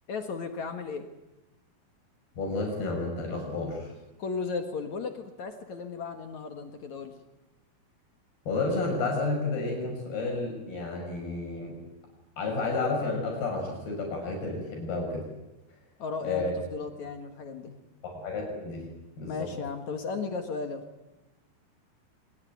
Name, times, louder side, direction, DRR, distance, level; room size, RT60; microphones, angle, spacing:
voice 1, 0.1-1.1 4.2-7.1 16.0-17.7 19.3-20.8, left 4 dB, 55° left, 7 dB, 2.6 m, -35 dB
voice 2, 2.4-3.9 8.5-11.8 12.4-15.3 16.2-16.5 18.0-18.9 19.2-19.5, left 3 dB, 75° left, 0 dB, 8.4 m, -31 dB
24.5 x 21.5 x 9.3 m, 0.99 s
omnidirectional pair, 4.5 m